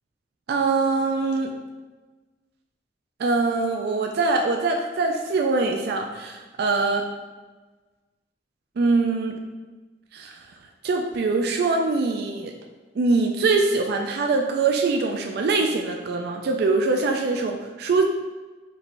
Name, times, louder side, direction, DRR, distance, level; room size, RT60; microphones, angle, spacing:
voice 1, 0.5-1.5 3.2-7.0 8.8-9.4 10.1-10.4 10.8-12.5 13.0-18.0, right 3 dB, 60° right, 3 dB, 0.3 m, -23 dB
5.1 x 3.2 x 2.5 m, 1.3 s
head